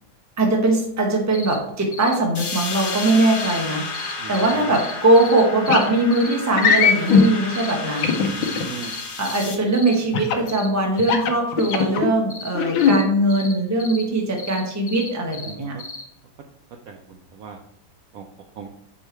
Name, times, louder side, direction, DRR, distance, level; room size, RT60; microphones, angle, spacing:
voice 1, 0.4-8.1 9.2-15.8, right 2 dB, 15° right, 1 dB, 0.6 m, -21 dB
sound 1, 1.3-1.6 1.9-2.1 2.4-3.6 3.9-5.8 6.1-6.3 6.6-7.3 7.5-7.7 8.0-8.2 8.4-9.4 9.7-10.0 10.5-10.7 11.0-11.2 11.6-11.8 12.3-12.5 12.8-13.0 13.3-13.5 13.8-14.0 14.4-15.5 15.8-16.0, left 3 dB, 30° left, 0.7 m, -35 dB
sound 2, 2.3-9.5, left 3 dB, 60° left, 1.6 m, -32 dB
voice 2, 4.2-4.8 8.2-8.9 15.5-15.8 16.9-17.6 18.1-18.3 18.6-18.7, right 6 dB, 85° right, 3 dB, 0.7 m, -38 dB
sound 3, 5.7-5.9 6.5-7.2 8.0-8.6 10.1-10.5 11.0-12.1 12.5-13.0, left 6 dB, 80° left, 1.5 m, -18 dB
5.4 x 4.8 x 4.4 m, 0.73 s
omnidirectional pair, 2.2 m